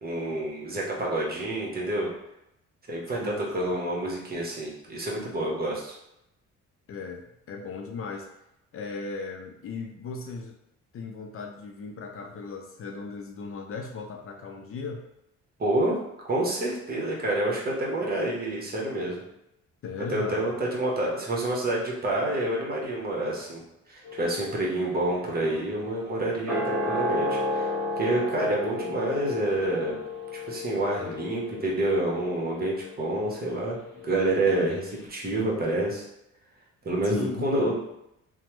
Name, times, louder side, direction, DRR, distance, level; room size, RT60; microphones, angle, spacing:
voice 1, 0.0-2.1 2.9-6.0 15.6-16.0 16.3-19.2 20.1-23.6 23.9-30.0 30.4-33.8 34.0-36.0 36.8-37.9, right 1 dB, 30° right, -3 dB, 0.9 m, -28 dB
voice 2, 3.1-3.7 6.9-8.3 8.7-10.6 10.9-15.0 19.8-20.6 37.0-37.5, left 4 dB, 50° left, 3 dB, 0.4 m, -37 dB
sound 1, 24.0-34.4 34.7-34.8, left 2 dB, 5° left, 1.2 m, -33 dB
3.0 x 2.0 x 3.0 m, 0.84 s
cardioid pair, 90°, 30 cm